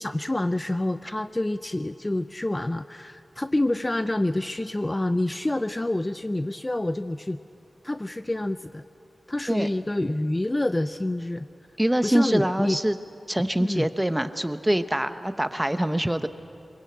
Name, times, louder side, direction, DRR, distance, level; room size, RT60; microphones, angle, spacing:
voice 1, 0.0-7.4 7.8-8.8 9.3-11.5 12.0-12.8 13.6-13.9, left 1 dB, 20° left, 11 dB, 0.5 m, -27 dB
voice 2, 11.8-13.0 13.3-16.3, right 1 dB, 10° right, 10 dB, 0.9 m, -24 dB
23.0 x 22.0 x 8.6 m, 2.6 s
wide cardioid pair, 80°, 0 cm